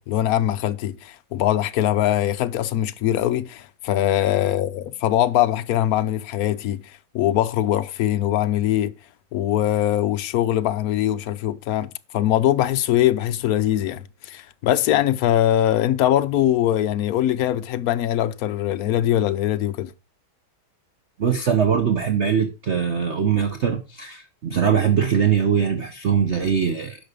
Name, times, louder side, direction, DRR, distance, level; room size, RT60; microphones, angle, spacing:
voice 1, 0.0-8.9 9.3-19.9, left 12 dB, 75° left, 0.8 m, -22 dB
voice 2, 21.2-27.0, right 7 dB, 50° right, 0.9 m, -21 dB
10.5 x 6.4 x 5.1 m
omnidirectional pair, 2.3 m